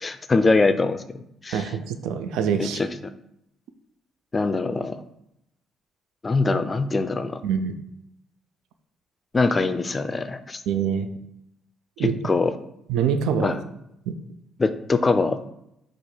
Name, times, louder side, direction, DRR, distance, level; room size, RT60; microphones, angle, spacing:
voice 1, 0.0-1.6 2.6-2.9 4.3-5.0 6.2-7.4 9.3-10.6 12.0-12.5 13.4-13.5 14.6-15.5, left 3 dB, 30° left, 10 dB, 0.4 m, -23 dB
voice 2, 1.5-2.8 7.4-7.7 10.7-11.1 12.0-12.2 12.9-13.6 14.1-14.2, right 7 dB, 85° right, 9 dB, 0.4 m, -25 dB
4.4 x 2.4 x 4.7 m, 0.80 s
cardioid pair, 90°, 0 cm